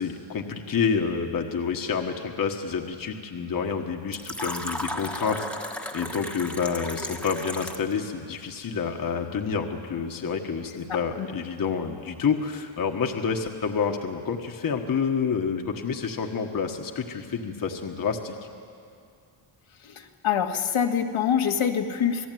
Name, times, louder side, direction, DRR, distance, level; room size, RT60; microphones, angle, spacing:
voice 1, 0.0-5.5 5.9-18.3, left 6 dB, 45° left, 4 dB, 1.5 m, -28 dB
Fill (with liquid), 4.1-8.0, equal, ahead, 1.4 m, -34 dB
voice 2, 10.9-11.3 19.8-22.3, left 8 dB, 70° left, 3 dB, 1.9 m, -25 dB
27.5 x 18.5 x 9.3 m, 2.4 s
wide cardioid pair, 155°, 49 cm